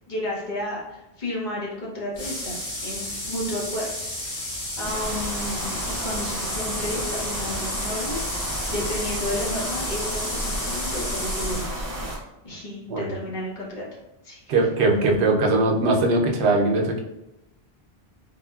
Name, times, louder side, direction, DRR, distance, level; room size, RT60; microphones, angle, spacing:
voice 1, 0.1-3.9 4.2-4.5 4.8-11.8 12.4-13.8 14.2-14.7, left 1 dB, 50° left, -4 dB, 0.8 m, -32 dB
sound 1, 2.1-11.7, left 1 dB, 85° left, 1.4 m, -32 dB
sound 2, 4.8-12.2, right 1 dB, 40° right, 0.7 m, -32 dB
voice 2, 14.5-17.0, right 2 dB, 85° right, 1 dB, 0.8 m, -20 dB
3.7 x 2.0 x 2.2 m, 0.93 s
omnidirectional pair, 1.1 m